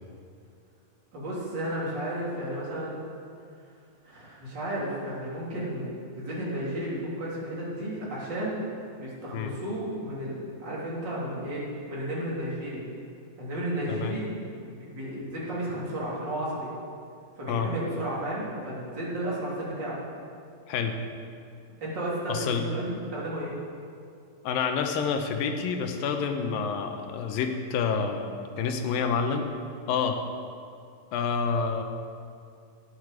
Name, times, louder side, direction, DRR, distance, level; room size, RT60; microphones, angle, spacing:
voice 1, 1.1-3.0 4.0-8.6 9.0-12.8 13.4-16.7 17.4-20.0 21.8-23.5, right 1 dB, 30° right, -7 dB, 3.7 m, -33 dB
voice 2, 20.7-21.0 22.3-22.6 24.4-29.5 29.9-30.2 31.1-31.8, left 6 dB, 80° left, 5 dB, 2.7 m, -28 dB
17.5 x 8.6 x 5.0 m, 2.4 s
omnidirectional pair, 4.0 m